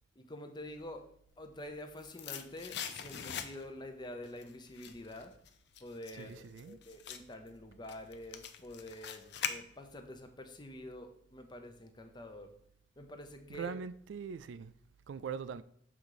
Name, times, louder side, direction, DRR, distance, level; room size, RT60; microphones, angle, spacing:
voice 1, 0.2-1.0 1.4-5.3 5.8-12.5 13.0-13.7, left 1 dB, 25° left, 0.7 m, -47 dB
sound 1, 1.5-3.9 4.2-10.1 10.4-10.5, left 7 dB, 65° left, 0.6 m, -43 dB
voice 2, 6.2-6.8 13.5-14.7 15.1-15.6, right 6 dB, 75° right, 0.3 m, -41 dB
7.0 x 3.8 x 4.8 m
head